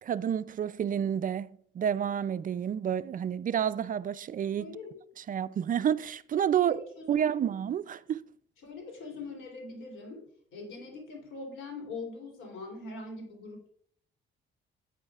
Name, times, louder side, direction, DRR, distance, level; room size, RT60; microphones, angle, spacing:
voice 1, 0.0-4.8 5.3-6.8 7.1-8.2, right 9 dB, 45° right, 0.4 m, -29 dB
voice 2, 4.6-4.9 6.6-7.4 8.6-13.7, left 3 dB, 85° left, 3.2 m, -42 dB
9.6 x 8.7 x 2.4 m
cardioid pair, 90°, 20 cm